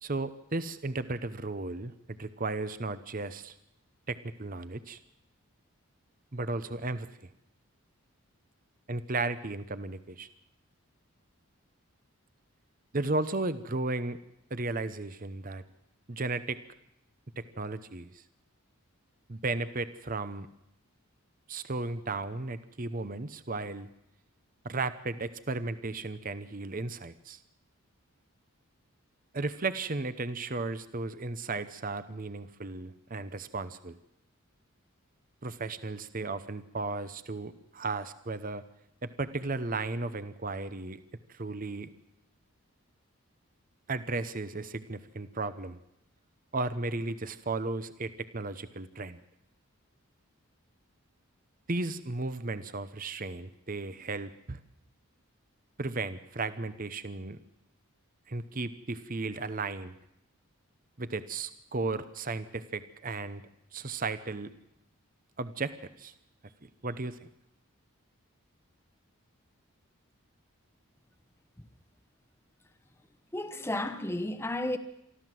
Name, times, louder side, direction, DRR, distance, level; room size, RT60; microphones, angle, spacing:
voice 1, 0.0-3.6 4.1-5.0 6.3-7.3 8.9-10.3 12.9-14.2 14.5-15.6 16.1-16.6 17.4-18.2 19.3-20.5 21.5-23.9 24.6-27.4 29.3-34.0 35.4-38.6 39.0-41.0 41.3-41.9 43.9-45.8 46.5-49.2 51.7-54.6 55.8-57.4 58.3-60.0 61.0-63.4 63.7-64.5 65.4-66.1 66.6-67.3, right 3 dB, 40° right, 0.8 m, -35 dB
voice 2, 73.3-74.8, left 1 dB, 10° left, 1.0 m, -32 dB
24.5 x 14.5 x 7.7 m
head